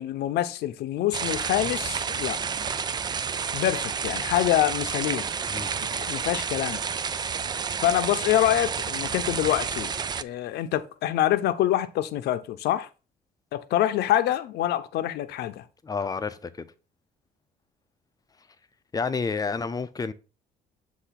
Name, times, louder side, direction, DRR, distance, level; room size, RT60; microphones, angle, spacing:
voice 1, 0.0-2.4 3.5-5.3 5.8-6.8 7.8-9.9 10.2-12.9 13.5-15.7, left 12 dB, 75° left, 0.8 m, -26 dB
sound 1, 1.1-10.2, right 6 dB, 25° right, 0.3 m, -30 dB
voice 2, 5.5-5.8 15.8-16.7 18.9-20.1, left 4 dB, 20° left, 0.6 m, -30 dB
8.2 x 2.7 x 5.8 m
cardioid pair, 110°, 17 cm